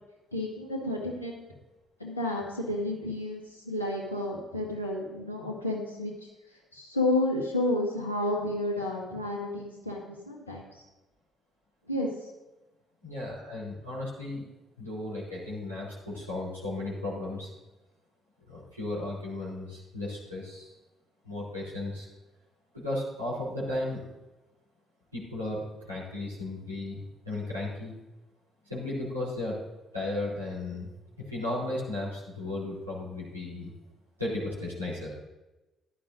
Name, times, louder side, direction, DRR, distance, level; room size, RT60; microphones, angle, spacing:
voice 1, 0.3-1.3 2.0-10.8 11.9-12.3, left 1 dB, 85° left, -2 dB, 1.8 m, -31 dB
voice 2, 13.0-14.5 14.8-17.5 18.5-20.7 21.2-22.1 22.7-24.0 25.1-27.9 28.6-29.6 29.9-30.9 31.3-33.7 34.2-35.1, left 2 dB, 90° right, -9 dB, 3.3 m, -35 dB
15.0 x 11.5 x 2.6 m, 1.0 s
figure-of-eight pair, 45°, 0 cm